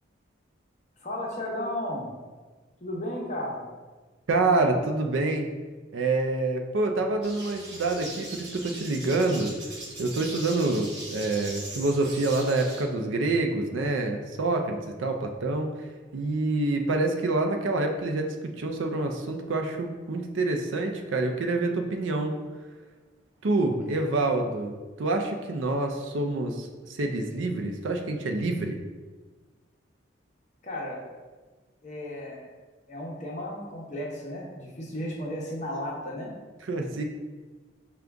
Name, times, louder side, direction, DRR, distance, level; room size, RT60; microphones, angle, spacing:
voice 1, 1.0-2.1 2.8-3.6 30.6-31.0 31.8-32.5 32.9-36.3, left 1 dB, 35° left, -3 dB, 0.8 m, -34 dB
voice 2, 4.3-5.5 5.9-9.5 10.0-15.7 16.1-22.3 23.4-28.8 36.7-37.0, right 2 dB, 75° right, 4 dB, 0.5 m, -27 dB
sound 1, 7.2-12.8, right 2 dB, 55° right, 0.9 m, -40 dB
5.2 x 2.3 x 3.4 m, 1.3 s
head